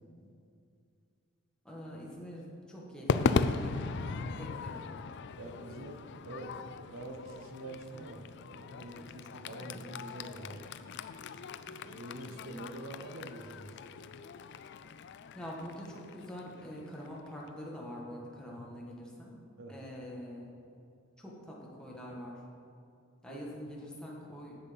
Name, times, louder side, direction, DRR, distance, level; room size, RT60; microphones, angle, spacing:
voice 1, 1.6-4.8 9.6-9.9 11.7-11.8 15.3-19.3 19.7-20.5 21.2-22.4 23.2-24.6, equal, 5° left, -4 dB, 1.7 m, -45 dB
Crowd / Fireworks, 3.1-17.5, left 4 dB, 60° left, 0.4 m, -38 dB
voice 2, 5.4-10.7 11.8-13.8 18.5-18.7 19.6-19.8 23.3-23.4, right 1 dB, 85° right, 4 dB, 1.1 m, -46 dB
10.5 x 7.3 x 5.3 m, 2.5 s
head